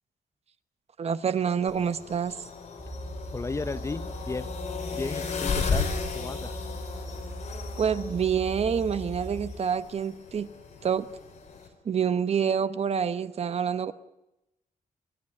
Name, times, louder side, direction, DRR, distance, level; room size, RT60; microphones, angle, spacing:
voice 1, 1.0-2.3 7.8-10.5 10.8-11.1 11.8-13.9, right 7 dB, 45° right, 14 dB, 1.0 m, -27 dB
sound 1, 1.7-11.7, left 5 dB, 50° left, 5.3 m, -35 dB
sound 2, 2.8-9.7, equal, 10° right, 4.4 m, -39 dB
voice 2, 3.3-4.5 4.9-6.5, left 3 dB, 20° left, 14 dB, 0.7 m, -34 dB
30.0 x 12.5 x 9.9 m, 0.91 s
wide cardioid pair, 160°, 15 cm